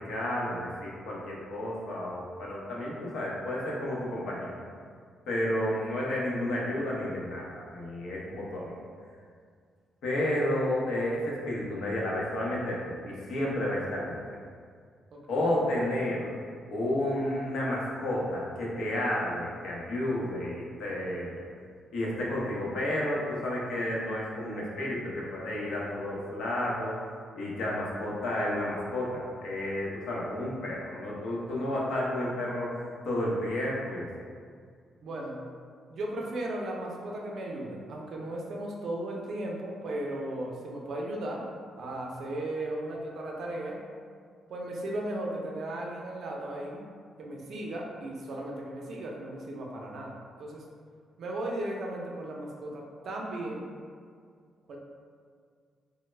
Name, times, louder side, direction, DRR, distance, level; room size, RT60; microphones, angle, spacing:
voice 1, 0.0-4.5 5.3-8.7 10.0-14.2 15.3-16.3 16.7-21.4 21.9-27.0 27.4-34.1, left 1 dB, 75° left, -4 dB, 0.7 m, -31 dB
voice 2, 15.1-15.5 35.0-35.4 35.9-41.5 41.8-43.8 44.5-46.9 47.2-50.7 51.2-53.7 54.7-54.8, right 1 dB, 55° right, -1 dB, 0.4 m, -36 dB
3.1 x 2.0 x 3.2 m, 2.1 s
cardioid pair, 150°, 0 cm